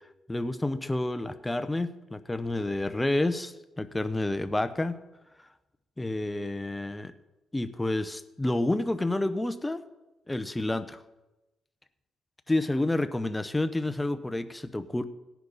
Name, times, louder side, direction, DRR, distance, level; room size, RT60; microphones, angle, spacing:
voice 1, 0.3-5.0 6.0-7.1 7.5-9.8 10.3-11.0 12.5-15.0, left 2 dB, 10° left, 11 dB, 0.8 m, -29 dB
17.5 x 10.5 x 4.1 m, 1.1 s
cardioid pair, 90°, 0 cm